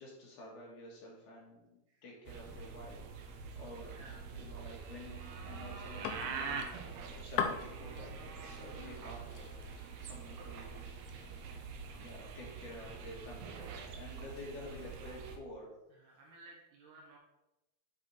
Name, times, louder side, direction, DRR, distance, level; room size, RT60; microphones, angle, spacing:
voice 1, 0.0-3.9 4.4-6.9 7.2-10.9 11.9-16.1, left 1 dB, 65° left, -3 dB, 3.3 m, -50 dB
sound 1, 2.3-15.4, right 5 dB, 85° right, 1.6 m, -45 dB
voice 2, 3.9-4.4 12.7-13.0 15.9-17.2, right 2 dB, 65° right, -1 dB, 2.5 m, -57 dB
sound 2, 5.6-11.5, left 7 dB, 80° left, 1.8 m, -43 dB
7.5 x 4.9 x 4.0 m, 0.95 s
omnidirectional pair, 4.1 m